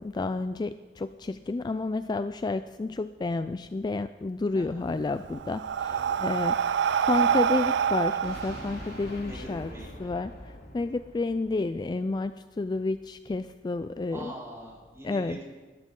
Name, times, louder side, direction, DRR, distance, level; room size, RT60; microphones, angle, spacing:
voice 1, 0.0-9.7 10.0-14.3 15.0-15.4, left 3 dB, 25° left, 12 dB, 0.3 m, -31 dB
voice 2, 4.5-4.9 5.9-6.2 9.2-10.1 14.1-15.4, right 1 dB, 15° right, -4 dB, 3.8 m, -43 dB
Breathing, 4.9-9.6, right 8 dB, 70° right, 0.3 m, -27 dB
sound 1, 8.2-12.2, left 1 dB, 60° left, 3.2 m, -44 dB
20.5 x 12.5 x 3.8 m, 1.3 s
head